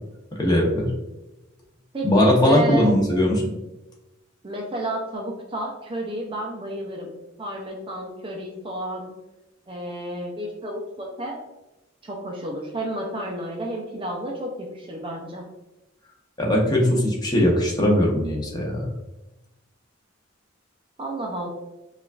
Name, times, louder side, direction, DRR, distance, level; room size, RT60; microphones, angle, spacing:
voice 1, 0.4-0.9 2.0-3.6 16.4-18.8, left 1 dB, 20° left, -2 dB, 0.7 m, -20 dB
voice 2, 1.9-2.9 4.4-9.1 9.7-11.4 12.0-15.4 21.0-21.5, right 1 dB, 25° right, 0 dB, 0.5 m, -31 dB
4.9 x 2.4 x 2.4 m, 1.0 s
head